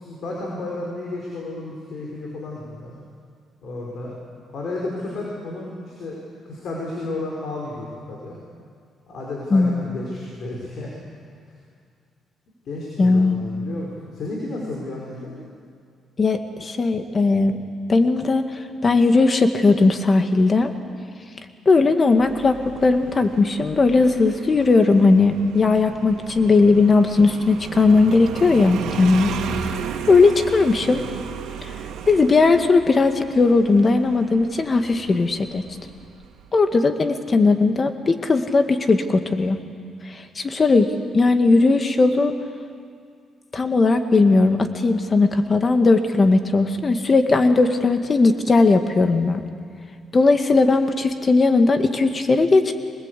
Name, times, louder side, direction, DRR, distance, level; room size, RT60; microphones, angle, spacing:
voice 1, 0.0-2.9 3.6-4.2 4.5-6.2 6.5-8.4 9.1-11.0 12.7-15.3, left 2 dB, 60° left, -3 dB, 5.5 m, -32 dB
voice 2, 9.5-9.9 13.0-13.4 16.2-17.6 17.9-18.4 18.8-20.7 21.7-29.3 30.1-31.0 32.1-35.6 36.5-39.6 40.1-42.3 43.5-49.4 50.1-52.7, left 3 dB, 35° left, 7 dB, 1.9 m, -18 dB
Motorcycle, 22.2-36.5, right 7 dB, 90° right, 2.1 m, -35 dB
24.5 x 20.5 x 8.4 m, 2.2 s
cardioid pair, 90°, 0 cm